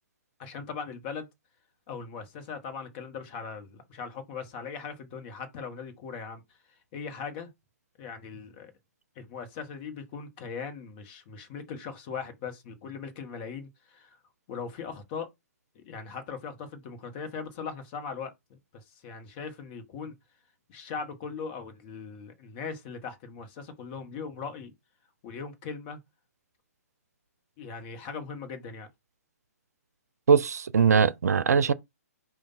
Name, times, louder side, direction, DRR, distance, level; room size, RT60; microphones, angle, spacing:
voice 1, 0.4-1.3 1.9-6.4 6.9-7.5 8.0-8.7 9.1-14.2 14.5-15.3 15.7-20.1 20.7-24.7 25.2-26.0 27.6-28.9, left 5 dB, 35° left, 1.3 m, -39 dB
voice 2, 30.3-31.7, right 6 dB, 75° right, 0.5 m, -21 dB
5.1 x 2.5 x 4.0 m
hypercardioid pair, 130°, 9 cm